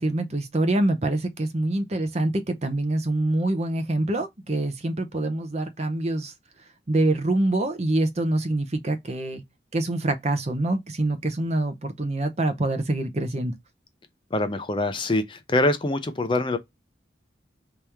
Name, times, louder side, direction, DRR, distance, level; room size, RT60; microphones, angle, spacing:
voice 1, 0.0-6.3 6.9-9.4 9.7-13.5, right 2 dB, 35° right, 0.6 m, -25 dB
voice 2, 14.3-16.6, left 2 dB, 25° left, 0.5 m, -24 dB
3.2 x 3.0 x 3.4 m
head